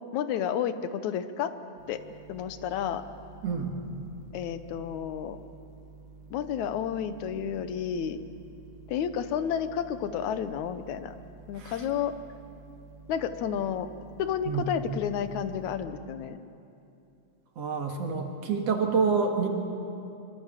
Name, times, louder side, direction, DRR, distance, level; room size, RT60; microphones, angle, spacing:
voice 1, 0.1-1.5 1.9-2.0 2.3-3.0 4.3-5.4 6.3-8.2 8.9-11.1 11.5-12.1 13.1-13.9 14.2-16.4, left 8 dB, 80° left, 11 dB, 2.3 m, -31 dB
sound 1, 1.8-15.7, right 3 dB, 90° right, 3.3 m, -50 dB
voice 2, 3.4-3.8 11.5-11.9 14.5-14.7 17.6-19.5, right 5 dB, 60° right, 2 dB, 2.8 m, -28 dB
25.0 x 24.5 x 7.5 m, 2.6 s
omnidirectional pair, 3.4 m